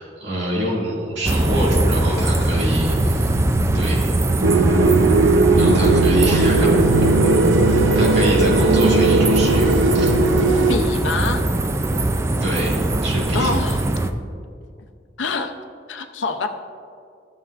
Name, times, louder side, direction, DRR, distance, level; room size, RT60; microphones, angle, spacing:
voice 1, 0.0-3.4 3.7-4.1 5.6-6.8 7.5-10.1 12.4-13.5, equal, 65° right, -4 dB, 2.2 m, -25 dB
sound 1, 1.2-14.1, right 2 dB, 15° right, 0.3 m, -21 dB
sound 2, 4.4-10.8, right 3 dB, 85° right, 0.6 m, -17 dB
voice 2, 10.7-11.4 13.3-13.8 15.2-15.5 15.9-16.5, left 3 dB, 85° left, 7 dB, 0.6 m, -25 dB
13.5 x 7.2 x 2.5 m, 2.3 s
head